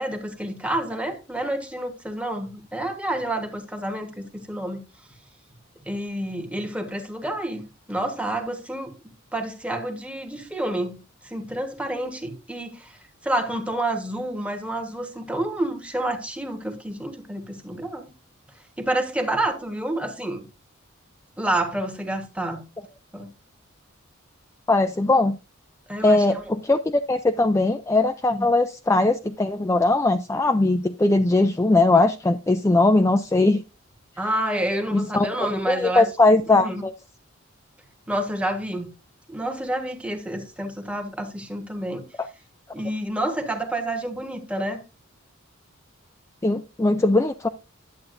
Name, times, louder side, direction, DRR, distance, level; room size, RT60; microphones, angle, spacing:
voice 1, 0.0-4.8 5.9-8.9 9.3-11.0 11.2-18.1 18.8-20.4 21.4-22.6 23.1-23.3 25.9-26.4 28.3-28.5 34.2-36.8 38.1-38.9 39.3-42.0 42.7-44.8, right 1 dB, 5° right, 1.3 m, -29 dB
voice 2, 24.7-25.4 26.0-33.6 34.9-35.3 35.7-36.9 46.4-47.5, left 2 dB, 15° left, 0.3 m, -20 dB
10.5 x 8.4 x 2.6 m
head